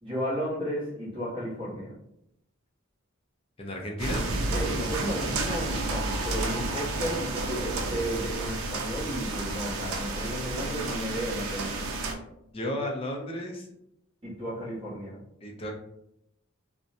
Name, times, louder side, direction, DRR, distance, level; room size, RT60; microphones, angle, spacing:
voice 1, 0.0-2.0 4.5-11.9 14.2-15.2, equal, 25° right, -8 dB, 1.0 m, -33 dB
voice 2, 3.6-4.3 12.5-13.7 15.4-15.7, left 1 dB, 25° left, 0 dB, 0.4 m, -33 dB
sound 1, 4.0-12.1, right 2 dB, 90° right, 0.4 m, -31 dB
2.6 x 2.0 x 2.6 m, 0.78 s
head